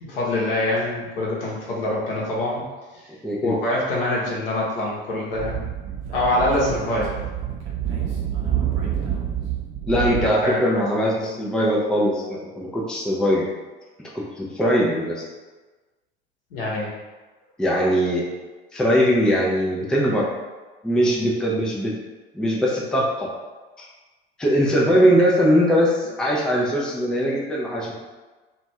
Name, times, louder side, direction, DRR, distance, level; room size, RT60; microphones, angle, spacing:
voice 1, 0.0-2.7 2.9-3.0 3.4-5.7 6.1-7.1 9.9-11.3 16.5-16.9, left 1 dB, 70° left, -4 dB, 0.9 m, -25 dB
voice 2, 3.2-3.5 9.9-13.5 14.1-15.2 17.6-18.3 18.7-20.3 20.8-21.9 22.3-23.3 23.8-23.9 24.4-27.9, equal, ahead, -4 dB, 0.4 m, -21 dB
Speech / Wind, 5.3-10.3, right 10 dB, 40° right, 0.7 m, -27 dB
2.5 x 2.4 x 3.1 m, 1.2 s
figure-of-eight pair, 75°, 30 cm